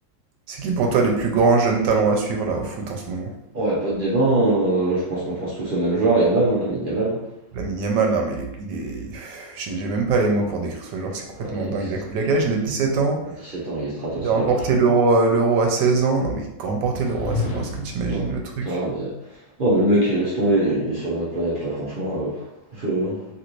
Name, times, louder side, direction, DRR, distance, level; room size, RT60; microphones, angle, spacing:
voice 1, 0.5-3.3 7.5-13.5 14.2-18.8, right 4 dB, 80° right, 2 dB, 1.2 m, -22 dB
voice 2, 3.5-7.2 11.4-11.9 13.5-14.5 18.1-18.2 18.6-19.2 19.6-22.4 22.7-23.2, right 2 dB, 65° right, -7 dB, 0.5 m, -22 dB
sound 1, 16.9-18.1, left 3 dB, 65° left, 0.8 m, -29 dB
3.2 x 2.5 x 3.0 m, 0.81 s
omnidirectional pair, 1.9 m